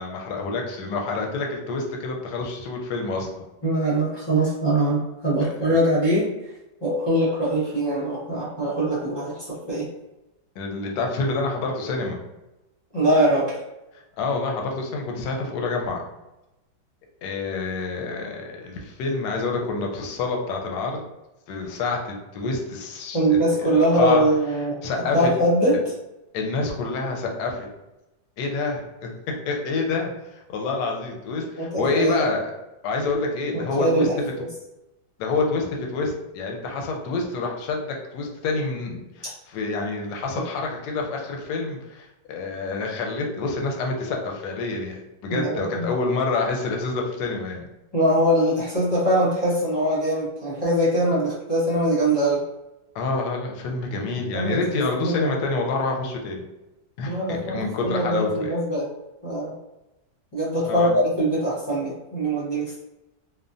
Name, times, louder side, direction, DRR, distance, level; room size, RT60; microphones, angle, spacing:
voice 1, 0.0-3.5 5.4-5.8 10.6-12.2 14.2-16.0 17.2-21.0 21.5-24.2 24.6-25.3 26.3-27.7 28.4-29.1 29.4-30.1 30.5-32.5 32.8-34.1 35.2-37.8 38.1-47.7 52.9-56.4 57.0-58.5 60.7-60.9, left 3 dB, 70° left, 1 dB, 1.0 m, -27 dB
voice 2, 3.6-6.3 6.8-9.9 12.9-13.6 23.1-24.8 25.1-25.8 31.6-32.2 33.5-34.5 45.3-45.9 47.9-52.4 53.9-54.0 54.3-54.6 55.0-55.3 57.1-58.9 59.2-59.5 60.3-62.8, right 1 dB, 25° left, -9 dB, 0.5 m, -22 dB
3.3 x 2.0 x 2.5 m, 0.96 s
omnidirectional pair, 2.0 m